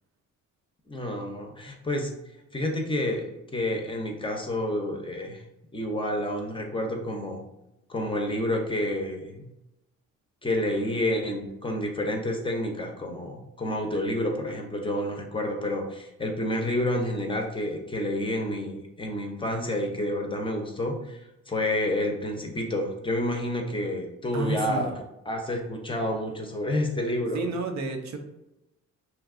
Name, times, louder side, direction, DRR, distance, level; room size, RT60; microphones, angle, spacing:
voice 1, 0.9-2.1 2.5-5.4 5.7-7.4 7.9-9.5 10.4-21.2 21.5-25.0 25.3-27.5, left 1 dB, 15° left, 2 dB, 0.5 m, -29 dB
voice 2, 24.3-24.8 27.3-28.2, right 3 dB, 65° right, 5 dB, 0.5 m, -30 dB
2.8 x 2.3 x 3.6 m, 0.91 s
cardioid pair, 90°, 30 cm